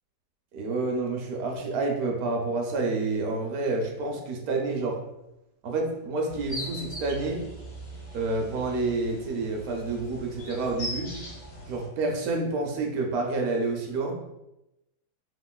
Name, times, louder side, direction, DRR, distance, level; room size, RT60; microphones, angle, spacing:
voice 1, 0.5-5.0 5.6-7.4 8.1-11.1 11.7-14.2, right 3 dB, 70° right, 1 dB, 1.0 m, -28 dB
sound 1, 6.3-11.9, equal, 45° left, 0.6 m, -40 dB
3.0 x 2.9 x 2.2 m, 0.92 s
omnidirectional pair, 1.8 m